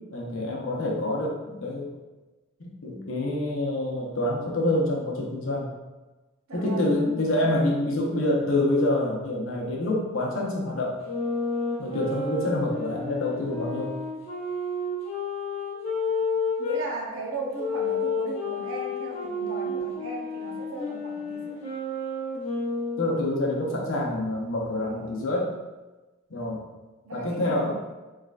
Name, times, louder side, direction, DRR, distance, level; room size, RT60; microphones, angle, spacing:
voice 1, 0.1-1.9 2.6-5.7 6.5-11.0 11.8-13.9 23.0-25.5 26.3-26.6 27.1-27.7, left 1 dB, 65° left, -2 dB, 0.7 m, -27 dB
voice 2, 6.5-7.0 7.3-7.6 16.6-21.6 27.0-27.7, right 2 dB, 65° right, -1 dB, 0.7 m, -36 dB
sound 1, 11.0-16.8 17.6-23.2, left 3 dB, 30° left, 0.8 m, -30 dB
3.6 x 3.2 x 2.3 m, 1.2 s
head